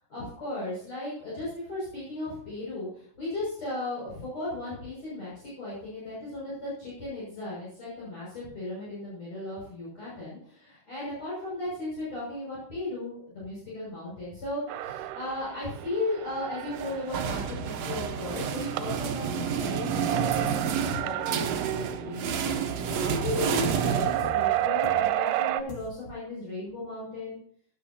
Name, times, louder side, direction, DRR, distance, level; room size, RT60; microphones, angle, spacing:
voice 1, 0.1-22.4 23.2-27.4, left 2 dB, 40° left, -8 dB, 7.5 m, -36 dB
sound 1, 14.7-25.6, right 14 dB, 85° right, 2.6 m, -32 dB
sound 2, 16.8-24.7, right 6 dB, 65° right, 1.7 m, -30 dB
sound 3, 20.2-25.9, left 5 dB, 75° left, 1.4 m, -42 dB
18.0 x 12.0 x 2.9 m, 0.63 s
omnidirectional pair, 4.7 m